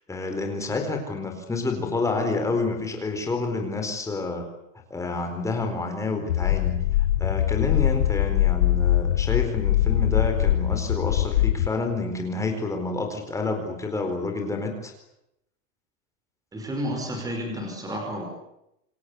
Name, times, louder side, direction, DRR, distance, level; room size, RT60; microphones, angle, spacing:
voice 1, 0.1-4.5 4.9-6.8 7.2-14.9, left 3 dB, 5° left, 4 dB, 4.4 m, -28 dB
sound 1, 6.3-11.7, left 13 dB, 90° left, 1.8 m, -22 dB
voice 2, 16.5-18.3, equal, 10° right, 3 dB, 5.2 m, -31 dB
27.5 x 23.0 x 8.4 m, 0.82 s
supercardioid pair, 170°, 42 cm